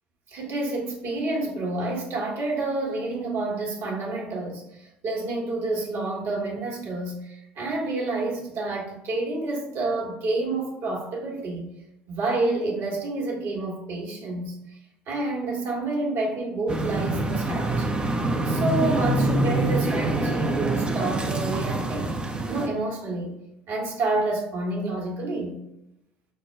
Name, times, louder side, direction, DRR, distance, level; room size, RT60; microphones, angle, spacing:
voice 1, 0.3-11.7 12.1-14.6 15.1-18.0 18.4-22.2 22.5-23.3 23.7-25.6, right 2 dB, 55° right, 1.3 m, -29 dB
sound 1, 16.7-22.7, right 2 dB, 20° right, 0.7 m, -25 dB
5.7 x 2.2 x 3.4 m
hypercardioid pair, 60°, 5 cm